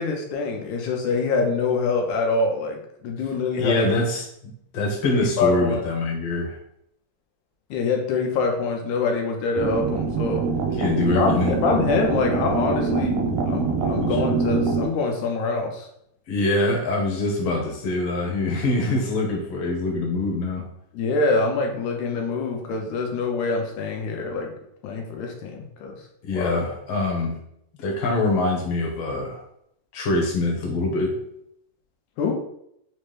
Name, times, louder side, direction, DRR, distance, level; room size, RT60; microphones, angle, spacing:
voice 1, 0.0-3.9 5.1-5.8 7.7-10.5 11.1-15.9 20.9-24.5 24.8-26.0 26.3-26.6 32.2-32.4, left 4 dB, 85° left, 2 dB, 2.1 m, -25 dB
voice 2, 3.6-4.2 4.7-6.6 10.8-11.6 14.0-14.2 16.3-20.7 26.2-27.4 27.8-29.4 29.9-31.2, left 2 dB, 70° left, 0 dB, 1.6 m, -24 dB
sound 1, 9.5-14.9, right 4 dB, 80° right, 1.8 m, -24 dB
5.4 x 2.0 x 3.1 m, 0.73 s
omnidirectional pair, 3.4 m